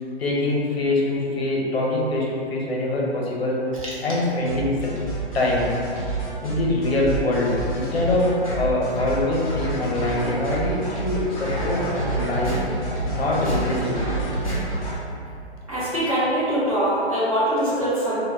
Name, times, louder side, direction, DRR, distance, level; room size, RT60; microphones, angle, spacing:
voice 1, 0.2-3.7 4.0-4.9 5.3-5.7 6.4-11.8 12.1-12.6 13.1-14.0, left 2 dB, 60° left, -4 dB, 0.7 m, -24 dB
sound 1, 4.5-14.9, right 2 dB, 35° left, 0.4 m, -28 dB
voice 2, 15.7-18.2, equal, 30° right, -10 dB, 0.6 m, -23 dB
2.2 x 2.0 x 3.3 m, 2.5 s
hypercardioid pair, 180°, 34 cm